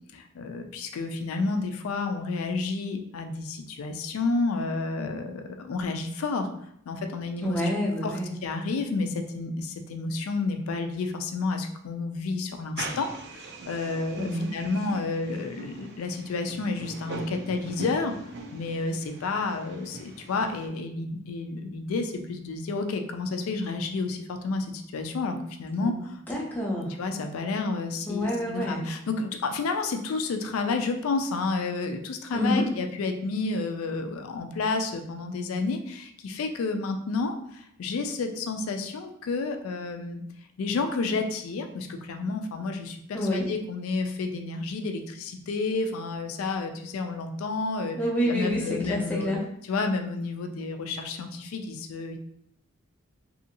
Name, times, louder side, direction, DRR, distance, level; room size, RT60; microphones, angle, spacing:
voice 1, 0.1-6.5 6.9-7.6 8.0-26.2 27.0-40.2 40.6-48.0 48.3-49.3 49.7-52.2, left 3 dB, 85° left, 6 dB, 0.4 m, -30 dB
voice 2, 7.4-8.3 14.2-14.5 25.8-25.9 26.3-27.0 28.1-28.9 32.3-32.7 43.1-43.5 47.9-49.4, equal, 10° left, -4 dB, 0.5 m, -28 dB
sound 1, 12.8-20.7, right 2 dB, 50° right, 0.4 m, -41 dB
2.7 x 2.6 x 2.7 m, 0.71 s
head